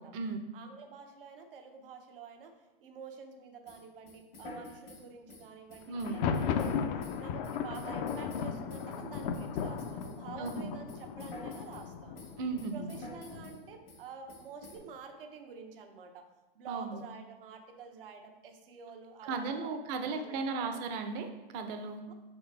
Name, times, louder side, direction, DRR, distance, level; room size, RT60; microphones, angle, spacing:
voice 1, 0.5-2.5 2.8-6.8 7.2-12.2 12.7-16.3 16.5-20.8 22.1-22.2, right 5 dB, 65° right, 4 dB, 0.9 m, -49 dB
sound 1, 3.7-10.2 10.4-11.9 12.2-13.6 13.9-14.0 14.3-14.8, left 1 dB, 85° left, 1.8 m, -49 dB
voice 2, 5.9-6.2 10.4-10.7 12.4-12.9 16.7-17.0 19.2-22.1, right 4 dB, 40° right, 7 dB, 0.7 m, -36 dB
Thunder, 6.0-13.7, left 6 dB, 45° left, 0.5 m, -36 dB
6.6 x 4.4 x 3.3 m, 1.1 s
hypercardioid pair, 115°, 29 cm